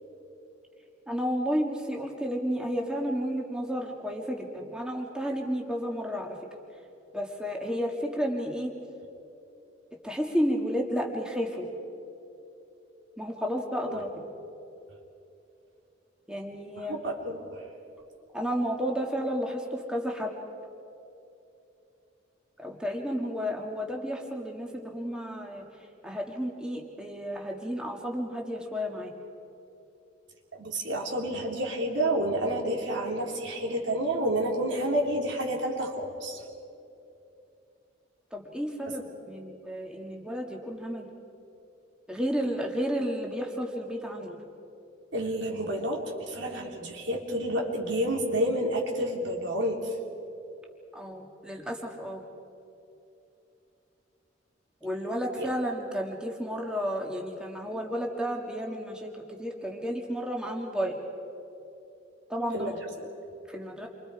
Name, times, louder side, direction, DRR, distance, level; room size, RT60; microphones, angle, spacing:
voice 1, 1.1-6.4 7.1-8.7 10.0-11.7 13.2-14.2 16.3-16.9 18.3-20.3 22.6-25.6 26.0-29.1 38.3-41.1 42.1-44.4 50.9-52.2 54.8-61.0 62.3-62.8 63.5-63.9, equal, 5° right, 0 dB, 1.7 m, -32 dB
voice 2, 16.8-17.5 30.6-36.4 45.1-49.8 55.4-55.5 62.5-62.8, right 1 dB, 80° right, 0 dB, 3.2 m, -29 dB
29.0 x 24.5 x 4.9 m, 2.8 s
head